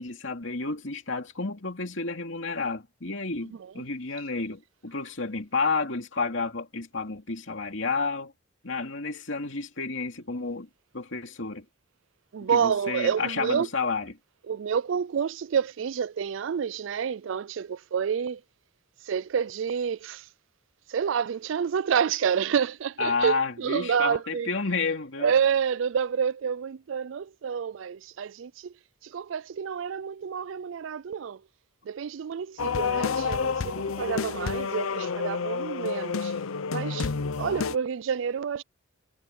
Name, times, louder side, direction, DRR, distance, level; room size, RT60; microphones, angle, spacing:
voice 1, 0.0-8.3 8.6-10.7 10.9-11.6 12.4-14.1 23.0-25.3, left 4 dB, 65° left, 2.7 m, -31 dB
voice 2, 3.5-3.8 12.3-13.7 14.5-18.4 19.0-20.3 20.9-24.5 25.2-28.7 29.0-31.4 31.9-36.3 36.7-37.1 37.4-38.6, right 7 dB, 65° right, 0.4 m, -28 dB
sound 1, 32.6-37.8, left 5 dB, 85° left, 0.7 m, -29 dB
head